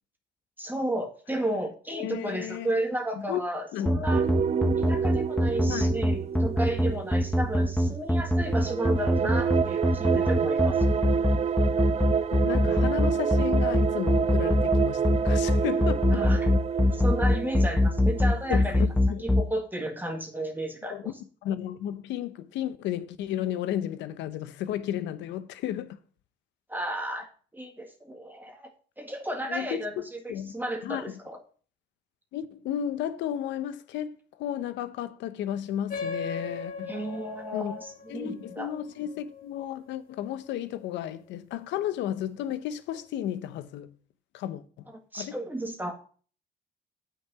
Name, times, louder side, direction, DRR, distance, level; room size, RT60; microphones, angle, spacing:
voice 1, 0.6-4.3 4.8-10.8 16.1-16.5 16.9-18.8 19.2-21.1 26.7-28.7 29.0-30.2 30.5-31.4 36.9-38.7 45.1-46.0, right 1 dB, 10° right, 1.8 m, -33 dB
voice 2, 1.9-2.7 3.2-3.4 3.7-4.0 5.7-5.9 12.3-16.3 18.5-19.2 20.9-21.1 21.4-26.0 29.5-29.7 30.3-30.5 30.8-31.2 32.3-36.9 37.5-37.7 38.1-43.9 44.3-44.8 45.1-45.4, left 11 dB, 85° left, 0.8 m, -33 dB
sound 1, 3.9-19.4, left 1 dB, 5° left, 1.1 m, -22 dB
sound 2, 4.1-7.7 8.3-18.9, right 7 dB, 35° right, 0.4 m, -29 dB
sound 3, 35.9-40.8, left 5 dB, 50° left, 2.1 m, -39 dB
8.3 x 5.8 x 6.1 m
cardioid pair, 90°, 18 cm